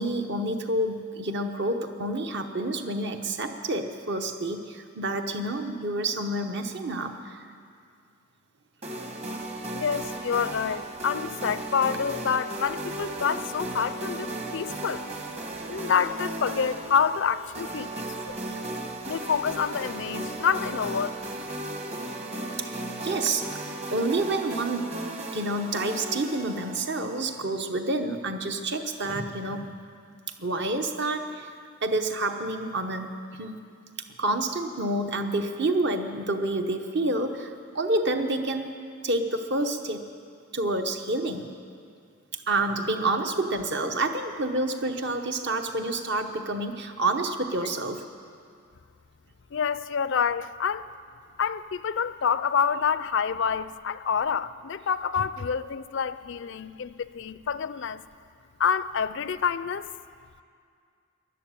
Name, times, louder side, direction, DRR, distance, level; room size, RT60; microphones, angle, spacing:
voice 1, 0.0-7.5 9.0-9.1 22.6-23.5 23.9-24.9 25.3-29.7 30.4-31.5 31.8-33.1 33.4-33.6 34.2-38.7 39.0-40.0 40.5-41.5 42.3-48.0, right 2 dB, 50° right, 6 dB, 1.0 m, -28 dB
sound 1, 8.8-27.4, right 2 dB, 30° right, 1.3 m, -36 dB
voice 2, 9.7-15.0 15.7-18.4 19.0-21.2 49.5-50.9 51.4-58.0 58.6-59.9, left 6 dB, 55° left, 15 dB, 0.4 m, -27 dB
13.5 x 11.0 x 9.0 m, 2.3 s
head